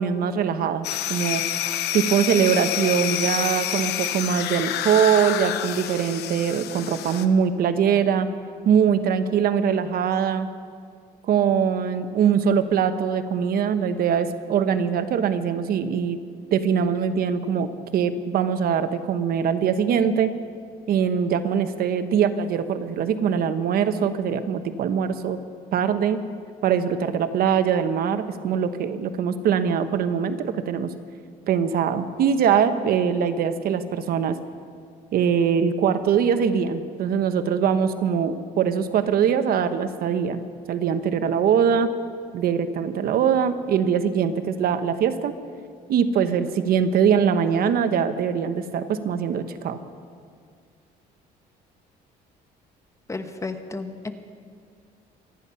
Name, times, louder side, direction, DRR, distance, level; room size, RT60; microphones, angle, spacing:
voice 1, 0.0-1.4 1.9-8.3 8.6-10.5 11.3-16.2 16.5-20.3 20.9-25.4 25.7-26.2 26.6-30.9 31.5-34.4 35.1-40.4 40.7-41.9 42.3-45.3 45.9-49.8, right 7 dB, 65° right, 10 dB, 1.0 m, -22 dB
sound 1, 0.8-7.3, left 11 dB, 75° left, 1.0 m, -28 dB
voice 2, 53.1-54.1, left 3 dB, 20° left, 8 dB, 1.1 m, -32 dB
25.5 x 10.0 x 5.6 m, 2.1 s
cardioid pair, 110°, 17 cm